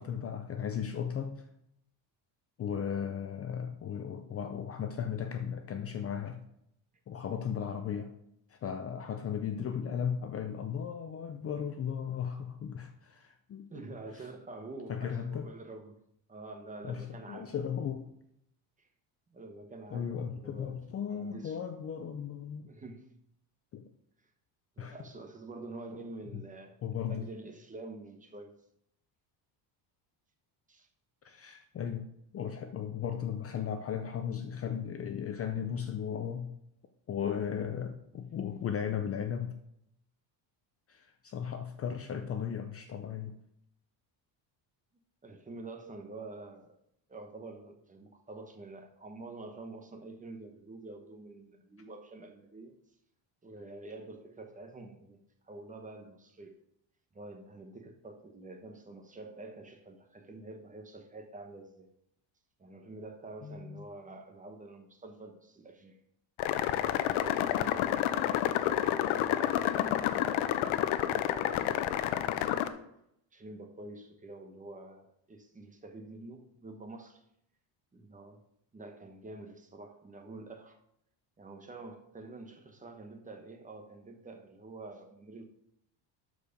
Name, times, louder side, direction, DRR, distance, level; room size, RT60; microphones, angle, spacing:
voice 1, 0.0-1.5 2.6-6.4 7.1-8.1 8.5-13.7 14.9-15.5 16.8-18.1 19.9-22.7 23.7-23.9 24.8-25.0 26.3-26.4 26.8-27.2 31.2-32.1 32.3-36.6 37.1-39.6 40.9-43.3 63.4-63.9, left 8 dB, 30° left, 7 dB, 0.5 m, -36 dB
voice 2, 13.7-16.0 16.3-17.5 18.8-18.9 19.3-20.8 21.1-21.6 22.6-23.1 24.8-26.8 27.1-28.5 30.7-30.9 45.2-46.7 47.1-52.7 53.4-55.2 55.4-56.6 57.1-61.9 62.6-66.0 66.8-72.7 73.3-77.2 77.9-78.4 78.7-80.8 81.4-85.4, right 2 dB, 15° right, 4 dB, 1.0 m, -47 dB
sound 1, 66.4-72.7, left 12 dB, 85° left, 0.8 m, -29 dB
12.0 x 4.7 x 5.1 m, 0.77 s
cardioid pair, 150°, 46 cm